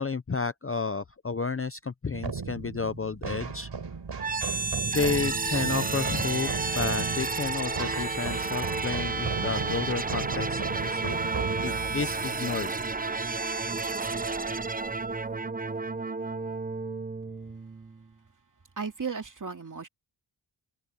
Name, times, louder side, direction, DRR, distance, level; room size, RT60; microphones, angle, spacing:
voice 1, 0.0-3.7 4.9-11.2 11.6-12.8, left 4 dB, 30° left, 0.7 m, -31 dB
sound 1, 2.1-13.5, right 5 dB, 60° right, 4.0 m, -36 dB
sound 2, 4.2-18.1, right 3 dB, 20° right, 0.6 m, -31 dB
voice 2, 18.8-19.9, right 5 dB, 40° right, 2.7 m, -35 dB
wide cardioid pair, 115°, 48 cm